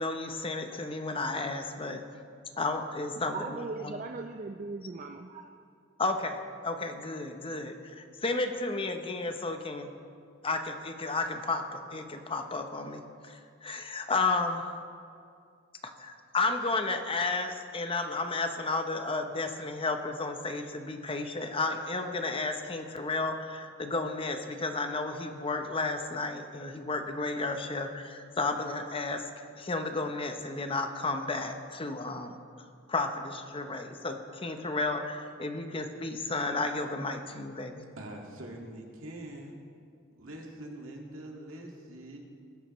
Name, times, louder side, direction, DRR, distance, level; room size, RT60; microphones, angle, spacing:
voice 1, 0.0-2.0 2.6-4.0 6.0-9.9 10.4-14.8 15.8-32.3 32.9-37.9, left 3 dB, 25° left, 6 dB, 0.7 m, -33 dB
voice 2, 3.0-5.5, right 3 dB, 40° right, 4 dB, 0.5 m, -39 dB
voice 3, 38.0-39.6 40.2-42.2, right 1 dB, 75° right, 0 dB, 1.9 m, -44 dB
20.0 x 10.5 x 3.1 m, 2.3 s
head